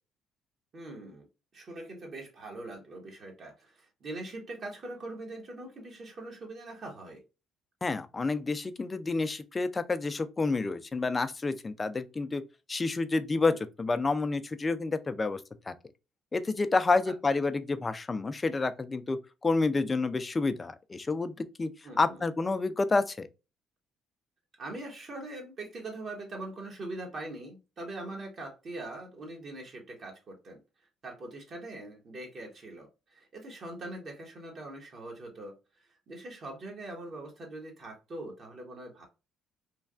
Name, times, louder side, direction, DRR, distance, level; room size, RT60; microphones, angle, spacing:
voice 1, 0.7-1.3 1.5-7.2 21.8-22.3 24.6-30.6 31.0-39.1, right 2 dB, 50° right, 1.2 m, -42 dB
voice 2, 7.8-12.4 12.7-15.4 15.7-15.8 16.3-21.7 22.0-23.3, left 3 dB, 25° left, 0.4 m, -29 dB
3.2 x 2.2 x 2.4 m
cardioid pair, 85°, 0 cm